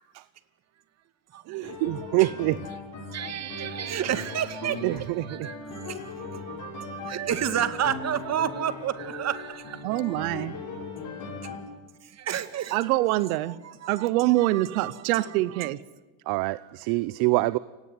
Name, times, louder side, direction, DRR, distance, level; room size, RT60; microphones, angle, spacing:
voice 1, 1.5-2.7 4.6-5.5 16.3-17.6, right 20 dB, 65° right, 0.8 m, -26 dB
sound 1, 1.6-11.6, left 4 dB, 45° left, 7.5 m, -39 dB
voice 2, 3.1-9.8 12.0-12.8 13.5-15.0 15.5-15.7, right 9 dB, 40° right, 2.1 m, -31 dB
voice 3, 9.8-10.5 12.7-13.6 13.9-15.8, right 17 dB, 90° right, 1.0 m, -25 dB
29.5 x 18.5 x 9.5 m
supercardioid pair, 120°, 41 cm